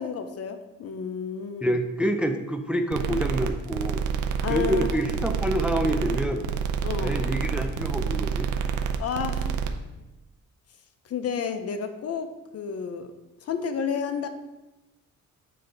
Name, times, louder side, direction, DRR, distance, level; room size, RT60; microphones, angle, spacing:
voice 1, 0.0-1.8 4.4-5.0 6.8-7.4 9.0-9.5 11.1-12.3 12.5-13.1 13.4-14.3, left 7 dB, 55° left, 8 dB, 0.6 m, -31 dB
voice 2, 1.6-4.0 4.5-6.4 7.0-8.5, right 1 dB, 5° right, 6 dB, 0.5 m, -27 dB
sound 1, 2.9-9.7, right 6 dB, 80° right, 0.6 m, -28 dB
7.6 x 3.3 x 3.9 m, 1.0 s
cardioid pair, 90°, 30 cm